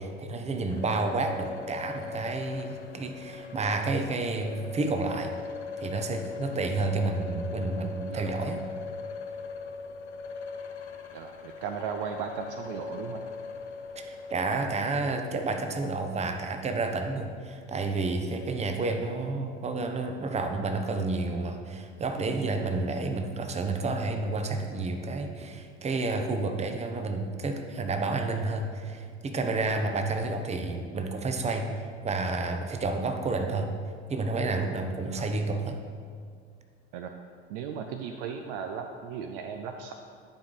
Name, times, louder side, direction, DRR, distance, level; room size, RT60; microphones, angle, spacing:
voice 1, 0.0-5.3 5.8-8.6 14.0-33.7 34.1-35.8, right 3 dB, 20° right, 5 dB, 0.8 m, -30 dB
sound 1, 0.7-14.5, left 5 dB, 80° left, 0.6 m, -40 dB
voice 2, 11.1-13.2 19.4-19.6 35.0-35.3 36.9-37.1 37.5-39.9, right 6 dB, 55° right, 6 dB, 0.5 m, -36 dB
10.5 x 4.7 x 3.9 m, 2.1 s
figure-of-eight pair, 70°, 33 cm